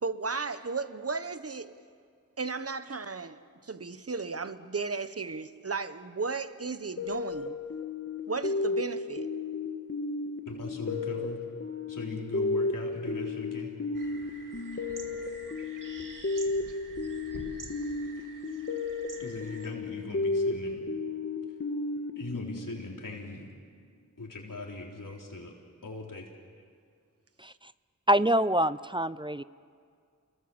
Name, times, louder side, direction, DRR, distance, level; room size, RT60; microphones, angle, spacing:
voice 1, 0.0-1.7 2.4-7.6 8.3-9.3, right 4 dB, 50° right, 1.2 m, -35 dB
sound 1, 7.0-23.3, left 3 dB, 45° left, 1.5 m, -34 dB
voice 2, 10.4-11.4 11.9-13.7 19.2-20.8 22.1-23.5 24.2-25.5 25.8-26.3, left 2 dB, 80° left, 3.9 m, -39 dB
sound 2, 13.9-19.7, right 3 dB, 80° right, 2.3 m, -47 dB
voice 3, 28.1-29.4, right 1 dB, 15° right, 0.5 m, -25 dB
29.0 x 22.0 x 7.2 m
wide cardioid pair, 55°, 32 cm